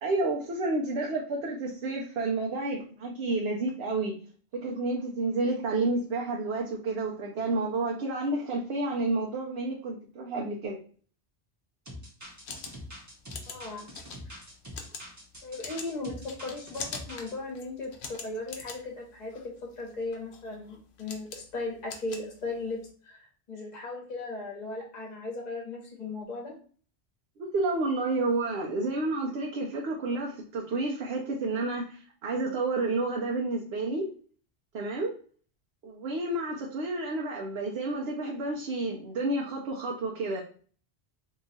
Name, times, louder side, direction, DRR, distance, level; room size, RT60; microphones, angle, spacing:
voice 1, 0.0-4.2 4.6-10.8 27.4-34.1 34.7-35.1 35.8-40.4, right 2 dB, 70° right, -1 dB, 0.9 m, -30 dB
sound 1, 11.9-17.3, equal, 20° right, 0.7 m, -45 dB
sound 2, 12.2-22.9, left 5 dB, 75° left, 0.9 m, -44 dB
voice 2, 13.5-13.9 14.3-14.4 15.4-26.5, left 2 dB, 45° left, 0 dB, 1.0 m, -37 dB
2.8 x 2.3 x 3.9 m, 0.43 s
omnidirectional pair, 1.1 m